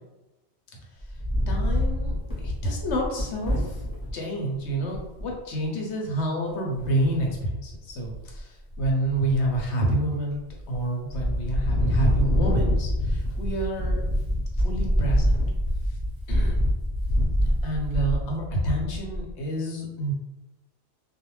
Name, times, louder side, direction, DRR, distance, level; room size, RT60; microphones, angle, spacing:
Wind, 1.0-4.1 4.6-4.7 4.9-5.3 6.8-7.4 7.9-8.4 8.7-9.9 10.3-10.8 11.1-19.3, equal, 20° left, 0.9 m, -26 dB
voice 1, 1.5-2.1 2.4-3.8 4.1-10.4 10.7-14.0 14.6-15.4 16.3-16.5 17.6-20.1, right 1 dB, 90° left, 0 dB, 1.0 m, -28 dB
2.4 x 2.1 x 3.1 m, 1.0 s
omnidirectional pair, 1.1 m